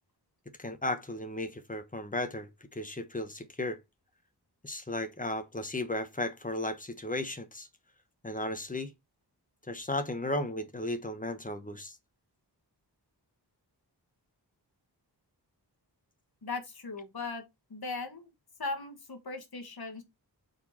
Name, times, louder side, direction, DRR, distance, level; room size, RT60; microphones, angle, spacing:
voice 1, 0.6-3.8 4.6-7.7 8.2-8.9 9.7-12.0, left 1 dB, 20° left, 1.1 m, -35 dB
voice 2, 16.4-17.4 17.7-18.3 18.6-20.0, left 3 dB, 60° left, 1.7 m, -38 dB
5.0 x 4.7 x 4.2 m
wide cardioid pair, 95°, 42 cm